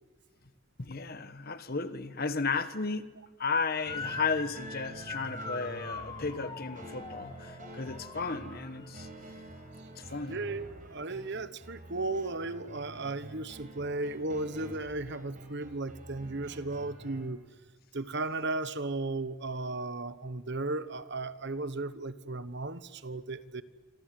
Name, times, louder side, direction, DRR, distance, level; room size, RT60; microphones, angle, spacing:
voice 1, 0.8-3.1 3.4-9.1 10.0-10.4, left 4 dB, 45° left, 1.4 m, -34 dB
Motor vehicle (road) / Siren, 3.8-9.0, left 3 dB, 20° left, 1.8 m, -42 dB
sound 1, 3.9-17.2, right 1 dB, 35° right, 5.9 m, -48 dB
voice 2, 10.3-17.4 17.9-23.6, right 2 dB, 55° right, 1.2 m, -35 dB
27.0 x 26.5 x 7.8 m
head